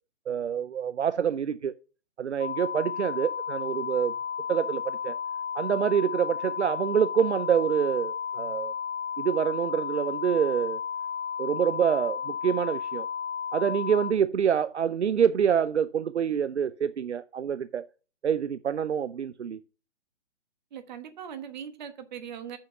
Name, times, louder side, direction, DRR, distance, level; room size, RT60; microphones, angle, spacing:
voice 1, 0.3-1.7 2.2-4.2 4.5-5.1 5.5-8.7 9.2-10.8 11.4-13.1 13.5-17.8 18.2-19.6, right 8 dB, 75° right, 0.6 m, -26 dB
sound 1, 2.4-14.1, left 7 dB, 90° left, 0.6 m, -33 dB
voice 2, 20.7-22.6, right 8 dB, 40° right, 1.3 m, -40 dB
7.7 x 5.8 x 5.6 m
figure-of-eight pair, 130°, 35 cm